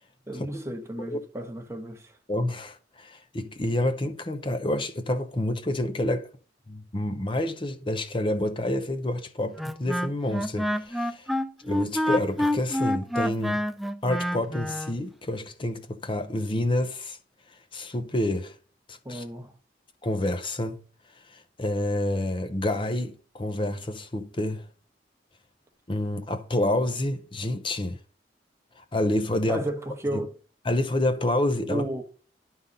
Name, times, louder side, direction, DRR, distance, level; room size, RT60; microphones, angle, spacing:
voice 1, 0.3-2.2 19.0-19.5 29.5-30.3 31.7-32.0, right 1 dB, 15° right, 1.1 m, -33 dB
voice 2, 2.3-6.3 6.7-11.3 11.6-13.6 14.0-17.2 17.5-18.6 18.9-19.2 20.0-20.8 21.1-24.7 25.9-28.0 28.8-29.6 30.1-30.2 30.7-31.9, left 1 dB, 30° left, 0.7 m, -28 dB
Wind instrument woodwind instrument, 9.6-14.9, left 1 dB, ahead, 0.4 m, -28 dB
11.5 x 3.9 x 5.3 m
head